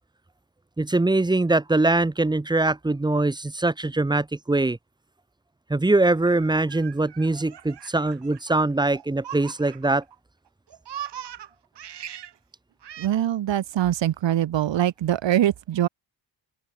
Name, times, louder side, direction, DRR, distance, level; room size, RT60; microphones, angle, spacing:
voice 1, 0.8-4.8 5.7-10.0, right 2 dB, 10° right, 1.2 m, -22 dB
Laughter, 6.1-10.1 10.5-12.4 12.8-13.1, right 10 dB, 70° right, 3.1 m, -40 dB
voice 2, 13.0-15.9, right 12 dB, 85° right, 2.4 m, -23 dB
open air
wide cardioid pair, 165°, 43 cm